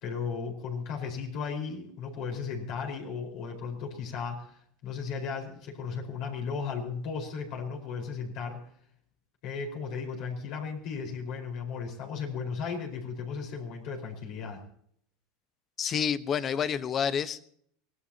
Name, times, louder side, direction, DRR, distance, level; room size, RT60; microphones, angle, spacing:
voice 1, 0.0-8.6 9.4-14.7, left 5 dB, 60° left, 4.6 m, -35 dB
voice 2, 15.8-17.5, left 7 dB, 35° left, 1.0 m, -29 dB
24.0 x 17.5 x 2.9 m
hypercardioid pair, 105°, 0 cm